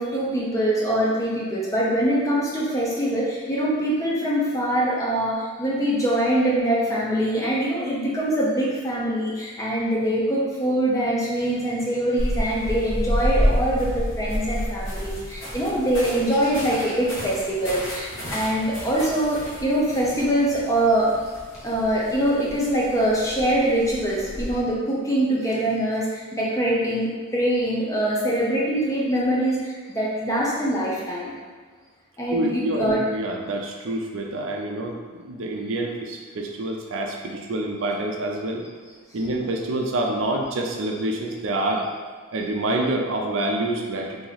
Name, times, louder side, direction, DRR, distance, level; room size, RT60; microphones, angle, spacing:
voice 1, 0.0-21.1 21.6-31.3 32.2-33.0, right 1 dB, 15° left, -5 dB, 0.6 m, -23 dB
sound 1, 12.2-24.6, equal, 65° left, 1.2 m, -30 dB
voice 2, 32.3-35.0 35.2-38.6 39.1-41.9 42.3-44.2, right 1 dB, 65° right, 1 dB, 0.5 m, -27 dB
2.9 x 2.8 x 4.0 m, 1.5 s
head